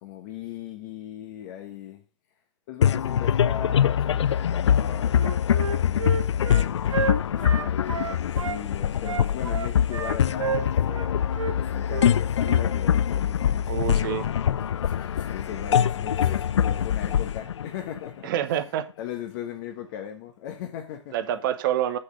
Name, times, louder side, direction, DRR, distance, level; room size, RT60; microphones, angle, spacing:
voice 1, 0.0-2.0 2.7-6.8 7.3-14.4 14.7-18.3 19.0-21.3, left 10 dB, 40° left, 1.2 m, -38 dB
sound 1, 2.8-18.4, left 9 dB, 70° left, 0.4 m, -24 dB
Wind instrument woodwind instrument, 5.1-8.6 9.0-11.1 11.3-11.5 11.9-12.1 12.4-12.6, right 6 dB, 85° right, 1.0 m, -31 dB
voice 2, 13.7-14.2 18.2-18.8 21.1-22.0, right 11 dB, 45° right, 1.1 m, -27 dB
8.1 x 6.6 x 5.1 m
figure-of-eight pair, 125°, 15 cm